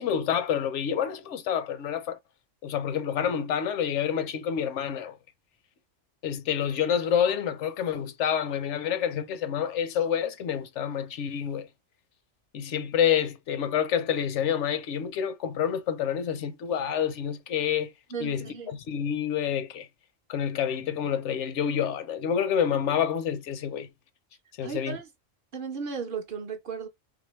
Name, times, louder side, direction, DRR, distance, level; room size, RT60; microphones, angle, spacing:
voice 1, 0.0-2.2 2.6-5.2 6.2-11.7 12.5-17.9 18.2-19.9 20.3-23.9 24.6-25.0, left 8 dB, 75° left, 0.9 m, -28 dB
voice 2, 18.1-18.7 24.6-25.1 25.5-26.9, right 6 dB, 55° right, 0.7 m, -35 dB
3.5 x 2.7 x 3.0 m
omnidirectional pair, 1.3 m